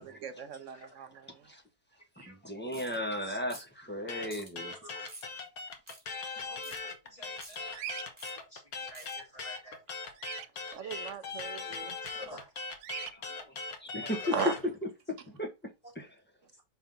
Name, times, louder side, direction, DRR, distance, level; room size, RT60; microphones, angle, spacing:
voice 1, 0.0-1.3 10.7-12.0 14.3-14.6, right 6 dB, 60° right, 0.9 m, -37 dB
voice 2, 2.3-4.8 13.1-13.3 13.8-14.3 15.1-15.5 15.9-16.2, left 1 dB, 5° left, 1.3 m, -36 dB
sound 1, 2.7-3.0 3.5-3.8 4.3-4.5 5.1-5.3 5.9-6.0 6.6-6.8 7.4-7.6 8.2-8.3 8.9-9.1, right 1 dB, 15° right, 3.0 m, -48 dB
sound 2, 4.1-14.6, left 4 dB, 70° left, 1.6 m, -40 dB
voice 3, 6.5-6.8 7.0-8.0 8.5-9.8 10.5-11.4 12.1-12.5 13.4-13.5 14.0-14.5, equal, 25° left, 4.2 m, -50 dB
Bird vocalization bird call bird song, 7.7-8.1 10.1-10.5 12.8-13.1, right 12 dB, 85° right, 1.1 m, -40 dB
5.6 x 4.6 x 3.9 m
omnidirectional pair, 1.6 m